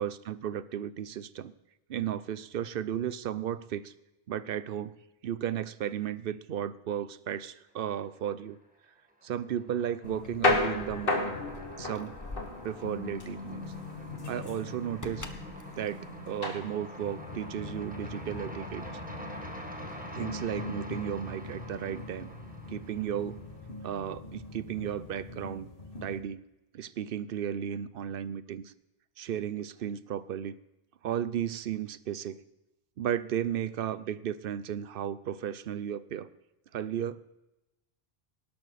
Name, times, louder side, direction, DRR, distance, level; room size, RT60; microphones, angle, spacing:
voice 1, 0.0-1.5 1.9-3.9 4.3-4.9 5.2-8.6 9.2-11.4 11.8-12.2 12.6-13.7 14.3-15.3 15.8-18.8 20.1-22.3 22.7-23.4 23.8-25.7 26.0-26.4 26.7-28.7 29.2-30.6 31.0-32.4 33.0-36.3 36.7-37.2, right 9 dB, 65° right, 16 dB, 0.8 m, -34 dB
sound 1, 8.0-8.5 8.8-24.0, right 1 dB, 10° right, 1.7 m, -47 dB
sound 2, 10.0-26.2, left 2 dB, 60° left, 2.2 m, -36 dB
Keys jangling, 10.1-17.0, left 2 dB, 20° left, 0.9 m, -48 dB
18.5 x 11.5 x 4.1 m, 0.94 s
omnidirectional pair, 1.1 m